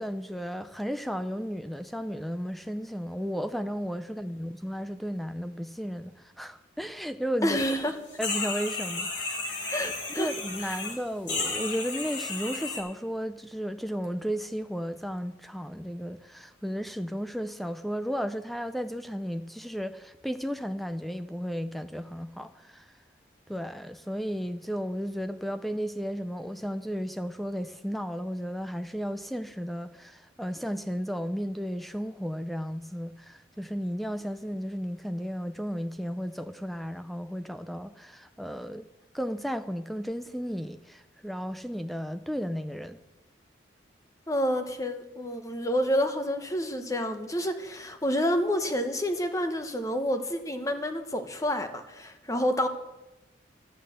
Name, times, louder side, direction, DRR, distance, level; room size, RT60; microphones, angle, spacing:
voice 1, 0.0-7.6 8.2-9.7 10.2-22.9 23.5-38.9 39.1-43.0, equal, ahead, 0.4 m, -34 dB
voice 2, 7.4-7.9 9.7-10.3 10.6-10.8 44.3-52.7, equal, 15° left, 0.9 m, -29 dB
sound 1, 7.5-7.8 8.1-10.9 11.3-12.8, left 3 dB, 80° left, 3.9 m, -33 dB
13.5 x 8.5 x 7.8 m
head